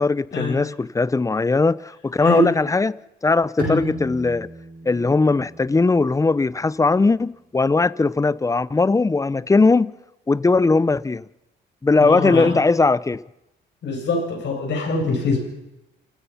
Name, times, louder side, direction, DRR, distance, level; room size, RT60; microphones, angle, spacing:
voice 1, 0.0-3.0 3.2-4.5 4.9-9.9 10.3-11.2 11.8-13.2, left 3 dB, 15° left, 0.6 m, -19 dB
Bowed string instrument, 3.6-7.1, right 3 dB, 45° right, 7.4 m, -37 dB
voice 2, 12.0-12.6 13.8-15.4, left 2 dB, 65° left, 7.7 m, -23 dB
28.5 x 16.0 x 5.7 m
cardioid pair, 90°, 20 cm